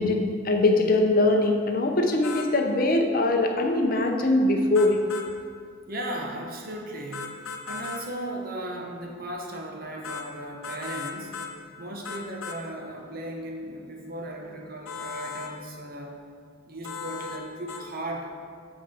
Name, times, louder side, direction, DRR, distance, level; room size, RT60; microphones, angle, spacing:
voice 1, 0.0-5.0, left 2 dB, 45° left, 3 dB, 0.7 m, -22 dB
sound 1, 2.2-2.5 4.7-5.3 7.1-8.0 10.0-10.3 10.6-11.5 12.0-12.6 14.9-15.5 16.8-17.4 17.7-17.8, left 5 dB, 75° left, 0.8 m, -36 dB
voice 2, 5.9-11.4 11.8-16.2 16.7-18.3, right 1 dB, 45° right, 1 dB, 0.9 m, -36 dB
8.1 x 4.7 x 4.3 m, 2.1 s
head